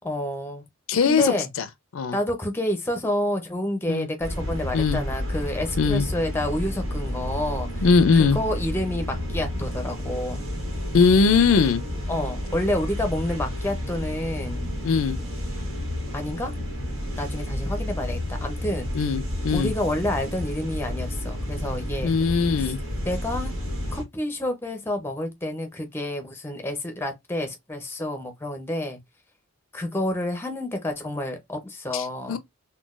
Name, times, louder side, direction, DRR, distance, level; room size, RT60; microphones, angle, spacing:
voice 1, 0.0-0.6 1.1-1.5 2.1-7.8 8.1-10.4 12.1-14.7 16.1-16.5 17.2-18.9 19.5-22.1 22.6-22.7 23.1-23.5 23.9-29.0 29.7-32.4, left 1 dB, 10° left, 0.5 m, -29 dB
voice 2, 0.9-1.3 1.9-2.2 3.9-4.1 4.7-5.0 5.8-6.1 7.8-8.4 10.9-11.8 14.8-15.2 18.9-19.7 22.0-22.8 31.9-32.4, left 5 dB, 70° left, 0.4 m, -20 dB
sound 1, 4.2-24.0, left 1 dB, 80° right, 1.5 m, -31 dB
3.8 x 2.2 x 2.4 m
head